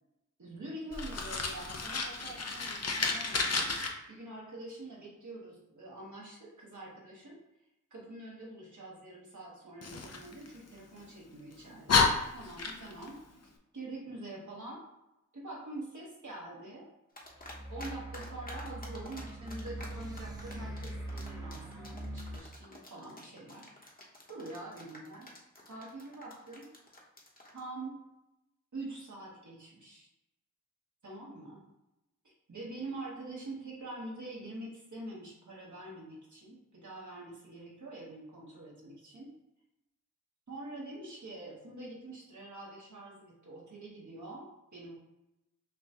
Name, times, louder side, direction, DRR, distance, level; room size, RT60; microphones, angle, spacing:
voice 1, 0.4-7.4 7.9-12.0 12.3-13.2 13.7-14.8 15.3-16.9 17.7-23.7 24.3-25.3 25.7-26.7 27.5-28.0 28.7-30.1 31.0-31.6 32.2-39.3 40.5-44.9, right 2 dB, 70° right, -4 dB, 1.5 m, -45 dB
Fire, 0.9-3.9 9.8-11.0 11.5-11.6 11.9-13.1, left 4 dB, 55° left, 0.6 m, -31 dB
sound 1, 17.2-17.9 18.1-27.6, left 1 dB, 30° left, 1.0 m, -49 dB
sound 2, 17.4-22.4, right 1 dB, 10° right, 0.8 m, -42 dB
5.8 x 2.3 x 3.0 m, 0.91 s
wide cardioid pair, 55°, 31 cm